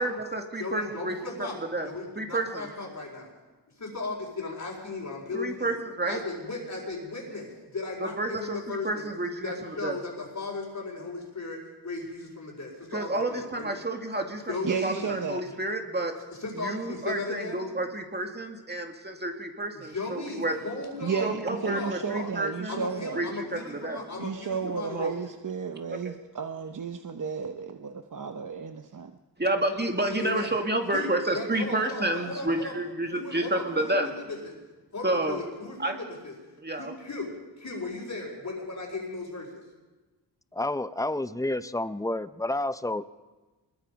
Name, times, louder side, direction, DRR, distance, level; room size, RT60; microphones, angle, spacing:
voice 1, 0.0-1.2 1.7-1.9 2.2-2.7 5.3-6.2 8.0-10.0 12.9-14.5 14.8-16.1 16.5-20.6 21.2-22.9 23.2-24.0 24.9-25.1 25.9-26.1 29.4-34.1 35.0-35.4 35.8-35.9 36.6-36.9, right 2 dB, 25° right, 2.2 m, -30 dB
voice 2, 0.6-3.3 3.8-5.8 6.0-9.1 9.4-13.7 14.5-15.1 15.4-15.6 16.4-17.6 19.7-22.3 22.7-25.1 30.2-30.5 30.9-32.8 33.1-34.5 34.9-36.3 36.8-39.6, left 3 dB, 45° left, 4.6 m, -36 dB
voice 3, 14.6-15.4 21.0-23.2 24.2-29.2, right 6 dB, 45° right, 0.9 m, -33 dB
voice 4, 40.5-43.1, left 1 dB, 10° left, 0.6 m, -30 dB
24.5 x 21.0 x 5.2 m
wide cardioid pair, 130°, 42 cm